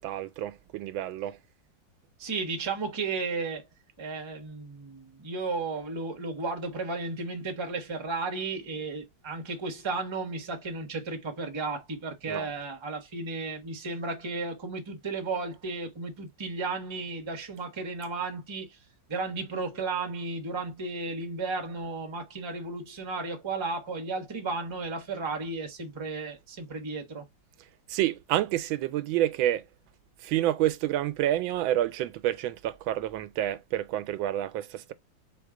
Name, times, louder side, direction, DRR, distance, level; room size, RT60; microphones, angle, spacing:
voice 1, 0.0-1.4 12.2-12.5 27.9-29.6 30.2-34.9, right 13 dB, 85° right, 1.4 m, -28 dB
voice 2, 2.2-3.6 4.0-18.8 19.1-27.2, right 3 dB, 20° right, 0.7 m, -34 dB
4.2 x 2.8 x 3.6 m
omnidirectional pair, 2.1 m